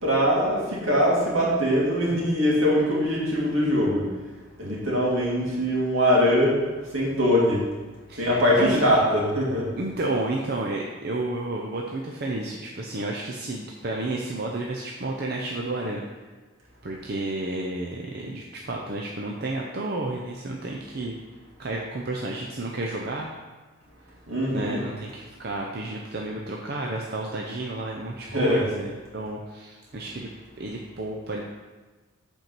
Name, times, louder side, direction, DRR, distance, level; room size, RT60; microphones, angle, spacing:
voice 1, 0.0-4.1 4.6-6.6 6.9-7.6 8.2-9.7 24.3-24.8 28.2-28.7, equal, 75° right, -5 dB, 2.6 m, -22 dB
voice 2, 8.1-8.8 9.8-16.0 16.8-21.2 21.6-23.3 24.5-30.3 30.6-31.4, right 2 dB, 50° right, -1 dB, 0.7 m, -31 dB
8.1 x 4.5 x 5.9 m, 1.3 s
head